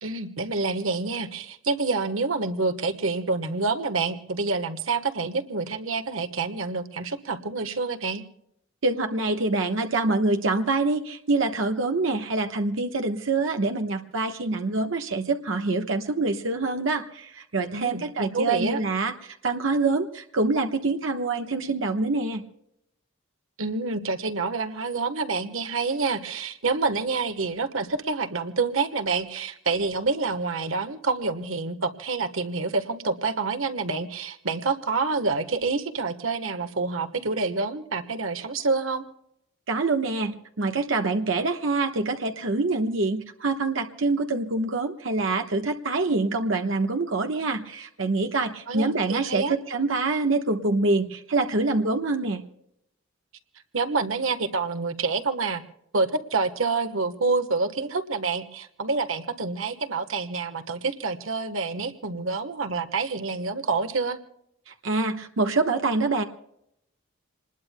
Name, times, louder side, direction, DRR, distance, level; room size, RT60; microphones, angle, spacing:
voice 1, 0.0-8.2 17.7-18.8 23.6-39.0 48.7-49.5 53.7-55.6 55.9-64.2, right 4 dB, 90° right, 9 dB, 1.2 m, -27 dB
voice 2, 8.8-22.4 39.7-52.4 64.7-66.2, right 3 dB, 70° right, 4 dB, 1.2 m, -25 dB
27.5 x 20.5 x 2.2 m, 0.77 s
head